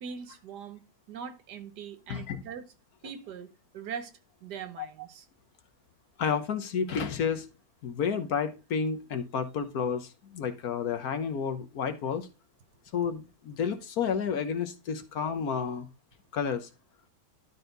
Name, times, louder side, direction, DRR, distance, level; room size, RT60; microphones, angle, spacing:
voice 1, 0.0-2.7 3.0-4.1 4.4-5.2, right 7 dB, 80° right, 1.6 m, -41 dB
voice 2, 2.1-2.4 4.8-4.9 6.2-7.5 7.8-12.3 12.9-15.9 16.3-16.7, left 6 dB, 65° left, 1.4 m, -31 dB
12.0 x 4.2 x 3.9 m
omnidirectional pair, 1.8 m